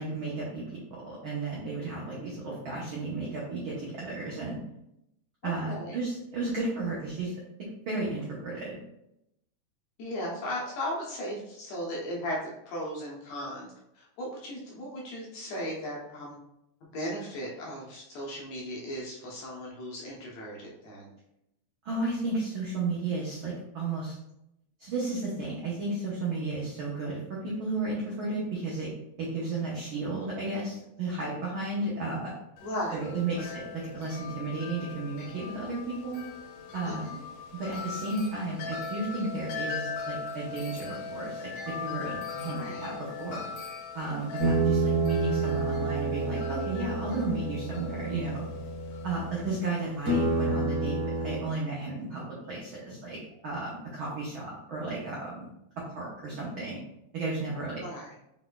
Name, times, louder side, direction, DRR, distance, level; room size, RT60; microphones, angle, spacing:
voice 1, 0.0-4.6 5.4-7.3 7.9-8.7 21.8-24.2 24.8-28.9 29.2-32.3 32.9-36.2 36.7-37.0 37.5-41.4 41.7-43.5 43.9-48.4 49.0-52.2 52.5-53.2 53.4-55.5 55.9-56.8 57.1-57.8, right 3 dB, 75° right, -6 dB, 1.1 m, -33 dB
voice 2, 5.4-6.0 10.0-12.4 12.7-16.4 16.8-21.1 32.6-33.1 33.3-33.5 36.9-37.2 42.4-42.9 57.8-58.1, equal, 70° left, -3 dB, 1.9 m, -37 dB
Wind chime, 32.6-50.5, left 5 dB, 85° left, 2.3 m, -40 dB
sound 1, 44.4-49.6 50.0-51.3, right 3 dB, 40° right, 1.5 m, -29 dB
5.1 x 4.1 x 2.3 m, 0.84 s
omnidirectional pair, 3.5 m